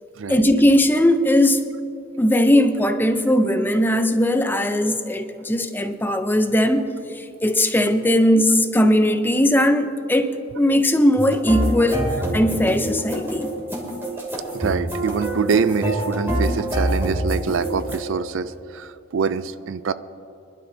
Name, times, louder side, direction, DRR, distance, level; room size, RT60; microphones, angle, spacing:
voice 1, 0.3-1.7 2.2-12.1 12.3-13.5, left 1 dB, 10° left, 8 dB, 0.6 m, -19 dB
sound 1, 11.2-18.0, right 1 dB, 10° right, 2.7 m, -26 dB
voice 2, 14.5-19.9, right 5 dB, 70° right, 14 dB, 0.4 m, -25 dB
24.5 x 12.0 x 2.8 m, 2.6 s
head